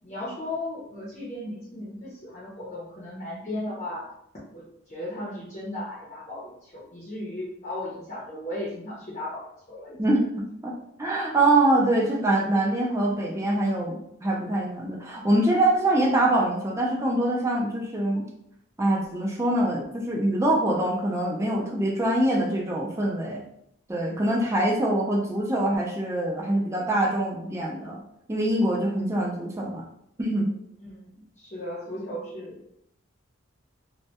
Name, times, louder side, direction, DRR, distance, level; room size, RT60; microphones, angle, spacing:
voice 1, 0.0-4.1 4.5-10.0 30.8-32.6, left 1 dB, 35° left, -6 dB, 0.6 m, -36 dB
voice 2, 10.0-18.3 18.8-23.5 23.9-28.0 28.3-29.8 30.2-30.5, right 1 dB, 15° right, -2 dB, 0.3 m, -24 dB
2.1 x 2.1 x 2.7 m, 0.75 s
head